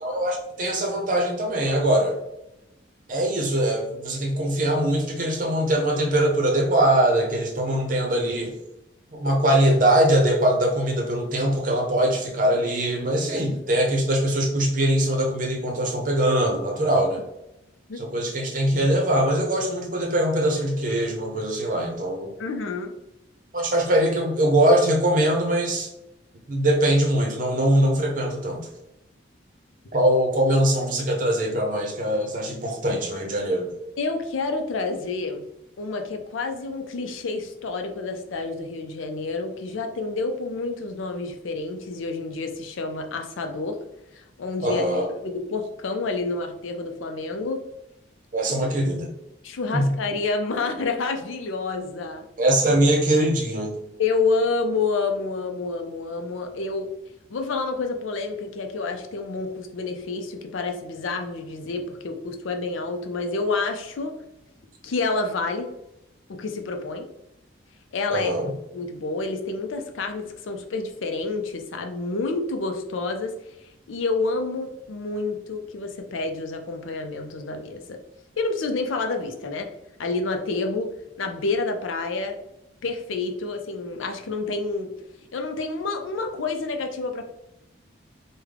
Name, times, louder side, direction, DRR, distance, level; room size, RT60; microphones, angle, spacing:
voice 1, 0.0-2.2 3.1-8.5 9.1-17.2 18.0-22.3 23.5-25.9 26.5-28.7 29.9-33.7 44.6-45.1 48.3-49.1 49.7-50.0 52.4-53.8 68.1-68.5, right 1 dB, 45° right, 1 dB, 0.7 m, -22 dB
voice 2, 22.4-22.9 34.0-35.4 35.8-43.8 44.1-44.8 45.5-47.6 48.5-48.6 49.4-52.2 54.0-56.9 57.3-64.1 64.8-65.7 66.3-67.1 67.9-68.3 68.7-73.3 73.9-78.0 78.4-79.7 80.0-80.9 81.2-82.4 82.8-84.9 85.3-87.2, left 3 dB, 85° left, 5 dB, 0.5 m, -28 dB
3.5 x 2.2 x 3.3 m, 0.89 s
head